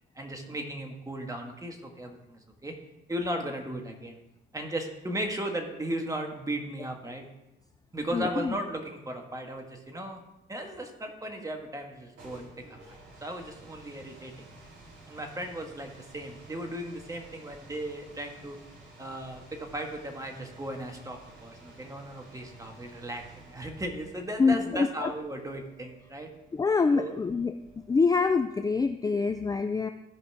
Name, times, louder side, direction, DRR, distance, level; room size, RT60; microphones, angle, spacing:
voice 1, 0.1-2.7 3.1-4.2 4.5-7.3 7.9-10.2 10.5-14.3 15.1-18.6 19.0-26.3 26.9-27.1, right 1 dB, 15° right, 3 dB, 1.6 m, -36 dB
voice 2, 8.1-8.6 24.4-25.1 26.5-27.5 27.9-29.9, left 4 dB, 20° left, 7 dB, 0.4 m, -25 dB
sound 1, 11.9-28.6, right 2 dB, 75° right, 3.6 m, -53 dB
15.0 x 5.3 x 3.6 m, 0.91 s
cardioid pair, 90°, 20 cm